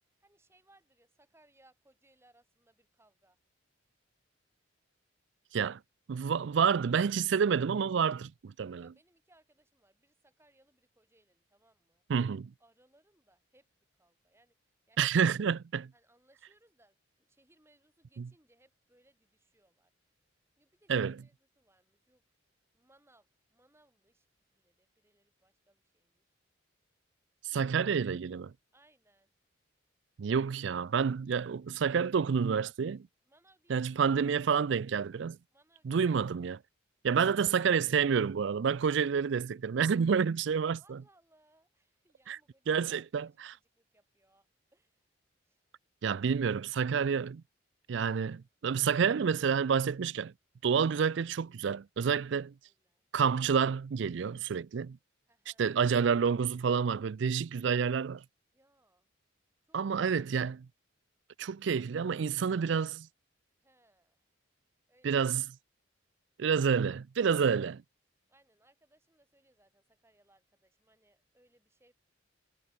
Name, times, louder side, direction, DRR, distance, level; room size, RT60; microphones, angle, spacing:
voice 1, 0.2-3.4 8.8-12.0 12.6-13.7 14.0-14.5 14.9-15.4 15.9-20.1 20.6-22.2 22.7-24.3 24.5-26.3 27.5-27.8 28.7-29.3 33.3-34.2 35.5-36.1 40.8-44.5 44.7-45.0 45.4-45.6 52.1-53.0 55.3-55.7 58.5-59.1 59.6-60.4 63.6-64.3 64.9-65.3 68.3-71.9, right 1 dB, 15° right, 6.5 m, -68 dB
voice 2, 6.1-8.9 12.1-12.5 15.0-15.9 18.2-18.3 20.9-21.2 27.4-28.5 30.2-33.1 33.7-35.4 35.8-36.6 37.0-41.0 42.3-42.4 42.7-43.5 46.0-47.4 47.9-50.3 50.6-52.5 53.1-55.0 55.6-58.2 59.7-60.7 61.4-63.1 65.0-65.4 66.4-67.8, right 6 dB, 65° right, 0.4 m, -29 dB
head